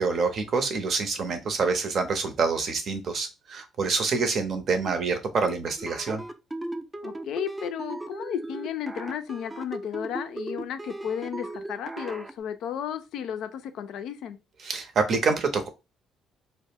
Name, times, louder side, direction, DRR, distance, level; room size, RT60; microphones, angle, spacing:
voice 1, 0.0-6.2 14.6-15.7, right 4 dB, 55° right, 0.6 m, -26 dB
sound 1, 5.8-12.3, right 2 dB, 15° right, 0.4 m, -37 dB
voice 2, 7.0-14.4, left 9 dB, 70° left, 0.3 m, -33 dB
2.1 x 2.0 x 3.5 m
supercardioid pair, 65°, 0 cm